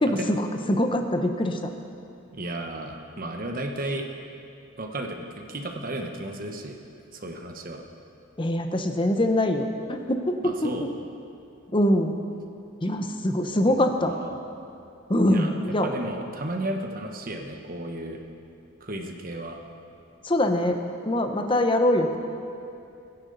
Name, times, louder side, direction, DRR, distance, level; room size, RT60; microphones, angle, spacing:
voice 1, 0.0-1.7 8.4-10.5 11.7-12.1 12.8-14.1 15.1-15.9 20.2-20.8 21.1-22.2, left 1 dB, 25° left, 5 dB, 0.9 m, -23 dB
voice 2, 2.3-4.1 4.8-6.8 7.1-7.8 10.4-10.9 13.7-14.4 15.2-15.5 15.8-18.2 18.8-19.6, right 1 dB, 45° right, 3 dB, 1.2 m, -34 dB
23.0 x 10.0 x 4.1 m, 2.7 s
head